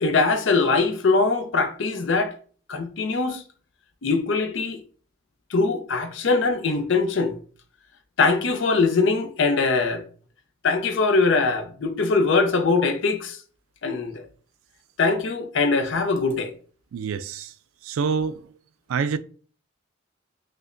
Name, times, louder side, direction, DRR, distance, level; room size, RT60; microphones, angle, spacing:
voice 1, 0.0-2.3 2.7-3.4 4.0-4.8 5.5-7.4 8.2-10.0 10.6-13.4 13.8-14.2 15.0-16.5, left 4 dB, 65° left, 0.5 m, -22 dB
voice 2, 16.9-17.5 17.9-18.4 18.9-19.2, right 6 dB, 90° right, 0.3 m, -26 dB
4.9 x 2.1 x 2.5 m
head